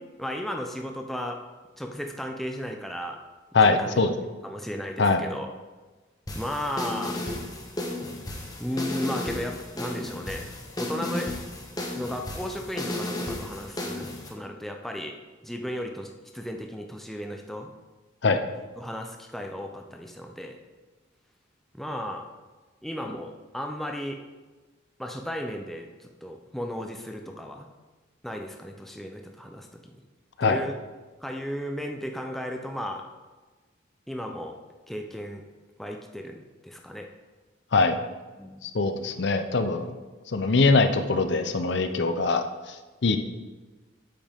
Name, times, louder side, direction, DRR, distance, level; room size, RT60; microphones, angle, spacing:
voice 1, 0.2-1.4 1.8-3.2 3.8-4.0 4.4-5.5 6.3-7.2 8.6-10.4 10.8-11.3 11.9-15.2 15.4-17.7 18.8-20.6 21.7-22.3 22.8-24.2 25.0-27.7 28.2-30.0 30.4-30.8 31.2-33.0 34.1-34.6 34.9-35.4 35.8-36.4 36.6-37.1 38.4-38.6, equal, ahead, 3 dB, 0.5 m, -34 dB
voice 2, 3.5-4.1 5.0-5.2 18.2-18.4 30.4-30.6 37.7-38.0 38.6-39.9 40.3-42.4 43.0-43.2, left 3 dB, 65° left, 8 dB, 0.6 m, -22 dB
sound 1, 6.3-14.3, left 1 dB, 20° left, 1.1 m, -34 dB
8.7 x 7.7 x 3.6 m, 1.3 s
head